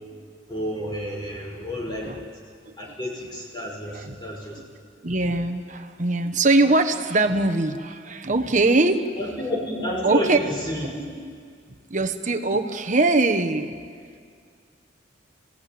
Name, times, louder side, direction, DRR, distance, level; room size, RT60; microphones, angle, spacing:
voice 1, 0.5-2.1 2.8-4.6 9.2-10.9, left 1 dB, 25° left, -3 dB, 5.5 m, -30 dB
voice 2, 5.0-9.1 10.0-10.4 11.9-13.7, right 2 dB, 40° right, 7 dB, 1.3 m, -22 dB
28.0 x 17.0 x 9.5 m, 2.1 s
head